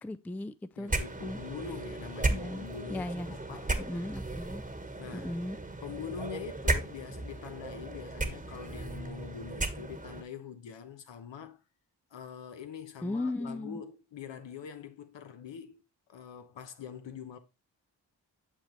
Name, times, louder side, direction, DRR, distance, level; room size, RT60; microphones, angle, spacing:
voice 1, 0.0-0.9 1.2-1.4 2.3-3.3 3.8-4.6 5.1-5.6 13.0-13.8, left 1 dB, 5° left, 0.3 m, -37 dB
voice 2, 0.8-4.1 5.0-5.4 5.8-11.6 12.1-15.8 16.1-17.4, left 7 dB, 70° left, 1.0 m, -44 dB
sound 1, 0.9-10.2, right 2 dB, 15° right, 1.2 m, -35 dB
6.8 x 5.6 x 3.0 m
supercardioid pair, 40°, 46 cm